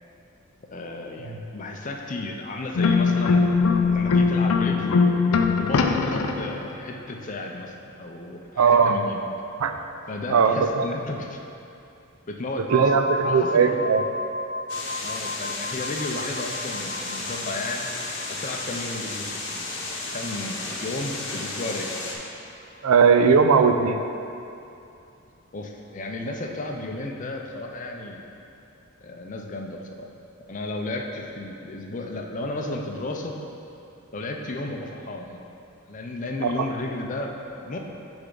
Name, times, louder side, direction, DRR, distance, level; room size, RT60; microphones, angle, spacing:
voice 1, 0.7-5.1 5.6-9.2 10.1-11.4 12.3-12.8 13.2-13.9 15.0-17.9 18.3-19.8 20.1-21.9 25.5-28.2 29.0-30.1 30.5-33.4 34.1-35.4 35.9-37.8, left 2 dB, 35° left, 2 dB, 0.5 m, -33 dB
sound 1, 2.7-6.7, left 4 dB, 85° left, 0.4 m, -21 dB
voice 2, 8.6-8.9 9.6-9.7 10.3-10.9 12.7-14.0 22.8-24.0 36.4-36.5, right 5 dB, 80° right, 6 dB, 0.4 m, -18 dB
sound 2, 12.7-22.3, left 1 dB, 40° right, 0.6 m, -35 dB
sound 3, 14.7-22.2, left 2 dB, 55° left, 0.9 m, -33 dB
9.9 x 3.5 x 3.8 m, 2.7 s
head